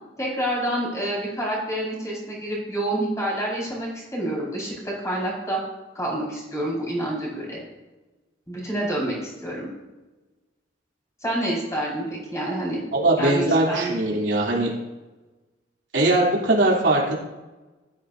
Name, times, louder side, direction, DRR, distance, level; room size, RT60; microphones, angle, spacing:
voice 1, 0.2-5.6 5.9-7.6 8.5-9.7 11.2-12.8 13.2-14.2, right 1 dB, 15° left, -5 dB, 5.1 m, -28 dB
voice 2, 12.9-14.7 15.9-17.2, right 2 dB, 70° right, -4 dB, 3.2 m, -20 dB
16.5 x 13.0 x 2.7 m, 1.1 s
head